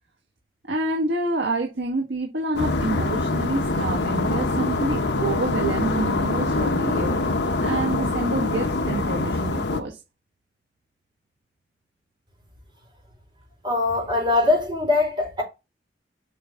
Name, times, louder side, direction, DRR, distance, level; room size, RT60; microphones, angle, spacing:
voice 1, 0.7-7.2 7.6-10.0, right 2 dB, 90° right, 1.7 m, -28 dB
sound 1, 2.5-9.8, left 2 dB, 70° left, 1.0 m, -24 dB
voice 2, 13.6-15.4, left 2 dB, 30° right, 4.3 m, -22 dB
7.7 x 5.7 x 3.7 m
head